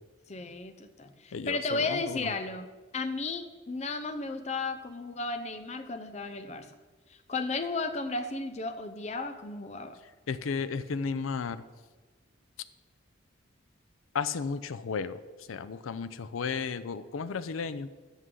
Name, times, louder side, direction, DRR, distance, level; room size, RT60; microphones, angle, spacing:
voice 1, 0.3-2.7 2.9-6.7 7.1-10.0, left 3 dB, 35° left, 8 dB, 0.6 m, -34 dB
voice 2, 1.3-2.3 10.3-11.6 14.1-15.2 15.5-17.9, left 5 dB, 85° left, 14 dB, 0.5 m, -33 dB
13.5 x 6.3 x 3.8 m, 1.3 s
head